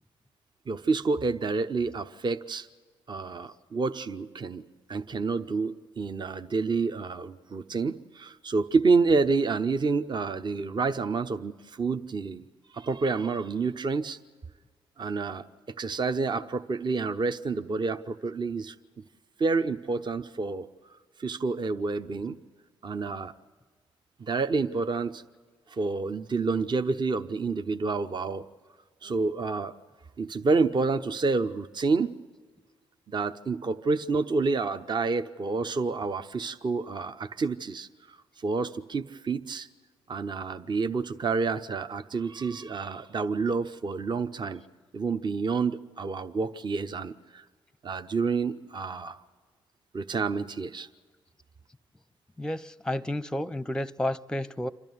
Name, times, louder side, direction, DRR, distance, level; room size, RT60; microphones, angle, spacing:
voice 1, 0.7-2.7 3.1-4.6 4.9-12.5 12.7-14.2 15.0-15.4 15.8-18.7 19.4-20.7 21.2-22.4 22.8-23.3 24.2-25.2 25.7-28.4 29.0-29.7 30.2-32.1 33.1-39.7 40.1-44.6 44.9-47.4 47.8-49.2 49.9-50.9, right 4 dB, 35° right, 0.8 m, -28 dB
voice 2, 52.4-54.7, left 1 dB, 5° left, 0.7 m, -31 dB
27.5 x 12.5 x 9.5 m
hypercardioid pair, 45°, 13 cm